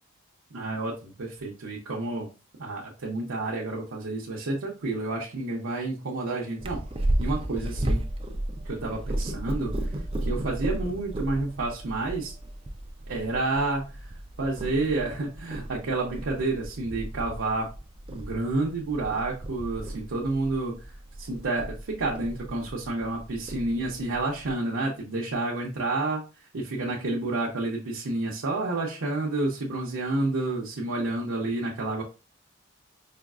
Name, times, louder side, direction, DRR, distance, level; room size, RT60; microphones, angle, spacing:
voice 1, 0.5-2.3 2.6-6.8 7.2-8.0 8.7-9.7 10.2-12.3 13.1-14.1 14.4-17.7 18.1-20.7 21.3-26.2 26.5-32.0, right 2 dB, 75° right, -4 dB, 0.7 m, -29 dB
Purr, 6.6-24.5, right 1 dB, 25° right, 0.4 m, -34 dB
5.0 x 2.3 x 2.3 m, 0.33 s
head